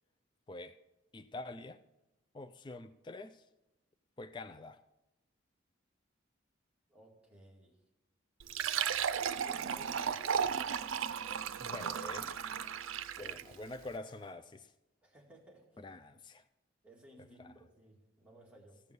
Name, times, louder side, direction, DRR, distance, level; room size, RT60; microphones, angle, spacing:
voice 1, 0.5-0.8 1.1-1.8 2.3-3.4 4.2-4.8 11.5-12.5 13.2-14.7 15.8-16.4 17.4-17.5, left 2 dB, 25° left, 10 dB, 0.3 m, -46 dB
voice 2, 6.9-7.8 9.1-10.8 13.1-13.4 15.0-15.8 16.8-18.8, right 1 dB, 5° right, -3 dB, 2.0 m, -58 dB
Fill (with liquid), 8.4-13.6, right 7 dB, 85° right, 0.5 m, -35 dB
Buzz, 9.0-14.3, equal, 70° left, 3.1 m, -63 dB
15.0 x 5.4 x 7.8 m, 0.99 s
head